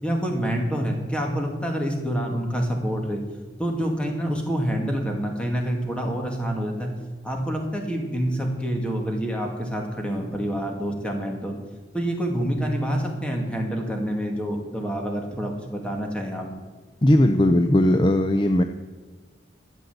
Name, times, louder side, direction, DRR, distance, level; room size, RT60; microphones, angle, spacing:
voice 1, 0.0-3.2 3.6-6.9 7.2-11.6 11.9-16.5, equal, 5° left, 1 dB, 2.4 m, -27 dB
voice 2, 17.0-18.6, left 1 dB, 25° left, 7 dB, 0.6 m, -18 dB
13.0 x 8.3 x 8.0 m, 1.3 s
head